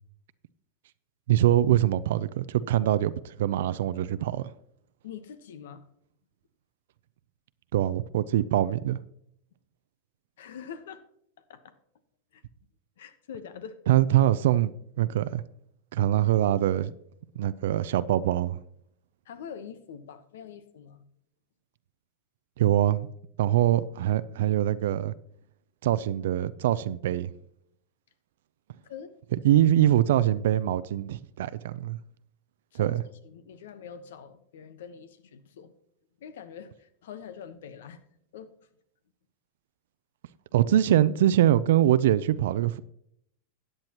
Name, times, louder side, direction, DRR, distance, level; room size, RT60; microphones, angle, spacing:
voice 1, 1.3-4.5 7.7-9.0 13.9-14.7 15.0-15.4 15.9-16.9 17.4-18.6 22.6-23.1 23.4-25.1 25.8-27.3 29.4-32.0 32.7-33.0 40.5-42.8, right 12 dB, 75° right, 0.4 m, -23 dB
voice 2, 5.0-5.8 10.4-11.0 11.5-11.7 12.3-12.4 13.0-13.8 19.3-21.0 28.8-29.1 32.7-35.7 36.2-38.0 38.3-38.5, left 7 dB, 80° left, 1.0 m, -44 dB
13.5 x 9.0 x 3.0 m
hypercardioid pair, 115°, 0 cm